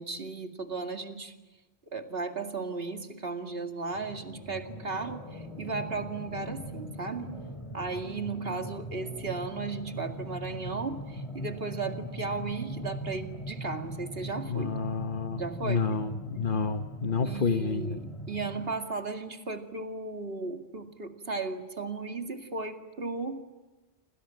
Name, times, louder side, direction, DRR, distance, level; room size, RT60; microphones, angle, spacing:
voice 1, 0.0-1.3 1.9-7.3 7.7-14.7 15.4-15.9 17.2-23.4, right 3 dB, 65° right, 6 dB, 2.5 m, -35 dB
sound 1, 3.9-18.6, right 1 dB, 30° left, 6.6 m, -40 dB
voice 2, 14.5-18.0, left 5 dB, 55° left, 8 dB, 1.2 m, -30 dB
28.5 x 26.0 x 7.6 m, 1.2 s
omnidirectional pair, 1.1 m